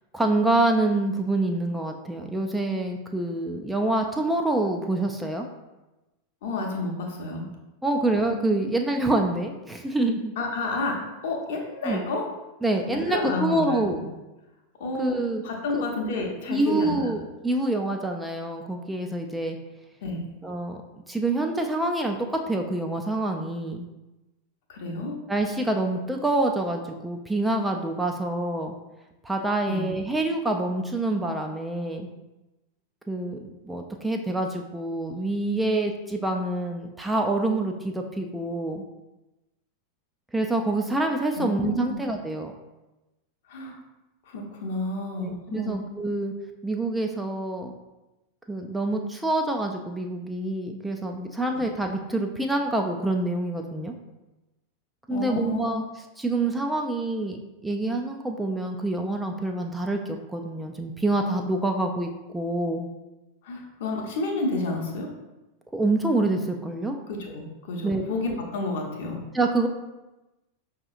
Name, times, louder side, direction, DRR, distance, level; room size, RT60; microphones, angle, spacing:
voice 1, 0.1-5.5 7.8-10.3 11.8-12.0 12.6-14.1 15.0-15.4 15.7-15.8 16.5-19.6 20.4-20.8 21.1-23.9 25.3-28.7 29.2-32.1 33.1-38.8 40.3-42.5 45.2-46.3 46.6-47.7 48.5-53.9 55.1-55.8 56.2-62.9 65.7-67.0 67.8-68.0 69.3-69.7, right 2 dB, 5° right, 3 dB, 0.3 m, -26 dB
voice 2, 6.4-7.5 10.4-12.2 12.9-14.1 14.8-15.2 15.4-17.1 20.0-20.2 24.7-25.2 29.7-29.8 41.4-42.0 43.5-43.8 44.3-45.7 51.5-51.6 55.1-55.7 63.4-65.1 67.1-69.2, left 2 dB, 55° left, 1 dB, 0.7 m, -30 dB
5.3 x 2.8 x 2.5 m, 1.0 s
figure-of-eight pair, 90°, 0 cm